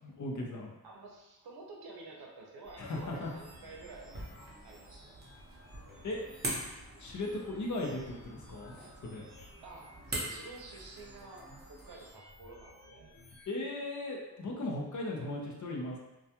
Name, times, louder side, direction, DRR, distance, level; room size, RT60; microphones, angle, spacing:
voice 1, 0.0-0.7 2.8-3.3 6.0-6.2 7.0-8.7 9.0-9.3 13.5-16.0, left 2 dB, 50° left, -1 dB, 0.5 m, -37 dB
voice 2, 0.8-4.3 4.6-5.1 9.6-13.1, right 3 dB, 75° right, -1 dB, 0.6 m, -50 dB
sound 1, 2.6-13.5, equal, 85° left, 0.9 m, -56 dB
sound 2, 2.9-12.1, right 1 dB, 25° right, 0.7 m, -44 dB
2.2 x 2.2 x 2.8 m, 0.98 s
wide cardioid pair, 100°, 38 cm